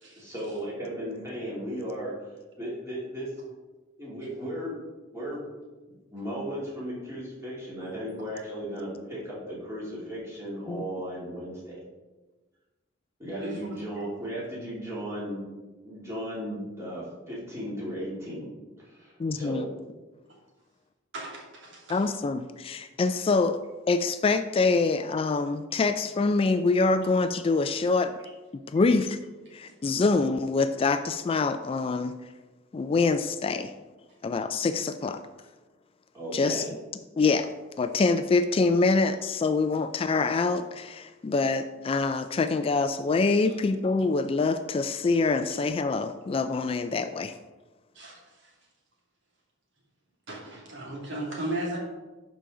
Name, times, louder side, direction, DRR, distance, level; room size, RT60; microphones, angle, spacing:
voice 1, 0.2-2.1 2.6-3.3 4.0-4.7 5.1-5.4 5.9-11.8 13.2-15.4 15.8-18.5 18.8-19.7 36.1-36.7, equal, 15° right, -7 dB, 2.8 m, -36 dB
voice 2, 19.2-19.7 21.9-23.6 23.9-28.2 28.7-29.2 29.5-32.1 32.7-33.7 34.2-35.2 36.3-36.6 37.2-37.5 37.8-47.3, left 3 dB, 30° left, 10 dB, 0.3 m, -25 dB
voice 3, 50.3-51.8, right 1 dB, 65° right, -3 dB, 2.4 m, -35 dB
11.5 x 5.1 x 3.8 m, 1.2 s
head